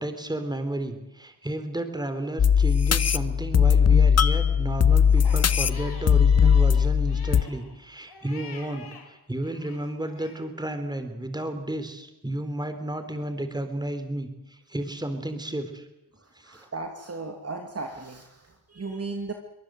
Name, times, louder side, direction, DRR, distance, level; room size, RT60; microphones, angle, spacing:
voice 1, 0.0-15.9 16.4-16.6, right 1 dB, 10° right, 8 dB, 3.9 m, -32 dB
sound 1, 2.4-7.4, left 7 dB, 30° left, 0.9 m, -19 dB
Crying sobbing, 5.2-9.1 9.4-10.5, left 5 dB, 55° left, 5.0 m, -47 dB
voice 2, 16.4-19.3, right 3 dB, 30° right, 4 dB, 2.6 m, -36 dB
24.0 x 19.5 x 8.1 m, 0.92 s
supercardioid pair, 70°, 48 cm